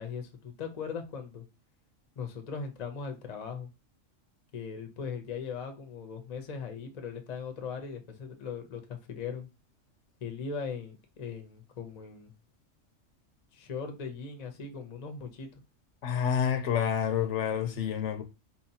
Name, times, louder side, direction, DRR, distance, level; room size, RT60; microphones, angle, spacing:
voice 1, 0.0-1.5 2.2-3.7 4.5-9.5 10.2-12.3 13.5-15.5, left 6 dB, 40° left, 0.6 m, -39 dB
voice 2, 16.0-18.2, left 8 dB, 70° left, 0.9 m, -28 dB
4.1 x 2.8 x 2.7 m
omnidirectional pair, 1.4 m